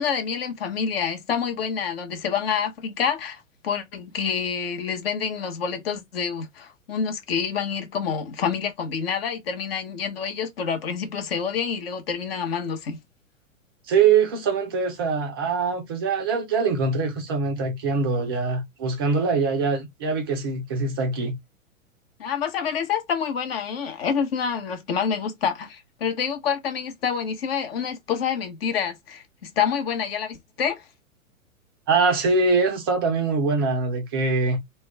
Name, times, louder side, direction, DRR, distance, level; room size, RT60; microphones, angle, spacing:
voice 1, 0.0-13.0 22.2-30.8, left 7 dB, 45° left, 0.8 m, -27 dB
voice 2, 13.9-21.4 31.9-34.6, right 4 dB, 20° right, 0.4 m, -23 dB
2.2 x 2.1 x 3.4 m
figure-of-eight pair, 105°, 41 cm